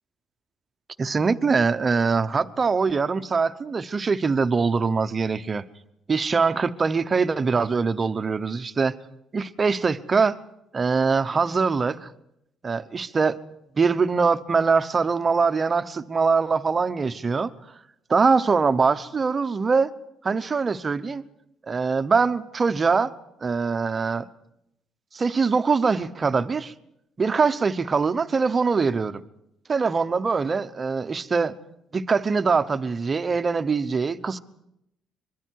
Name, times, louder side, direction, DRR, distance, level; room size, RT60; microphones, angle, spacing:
voice 1, 1.0-5.6 6.1-9.0 9.3-10.4 10.7-12.1 12.6-13.4 13.8-17.5 18.1-19.9 20.2-21.2 21.7-23.1 23.4-24.2 25.1-26.7 27.2-29.2 29.7-31.5 31.9-34.4, right 4 dB, 25° right, 0.9 m, -23 dB
24.5 x 23.0 x 4.7 m
cardioid pair, 130°, 0 cm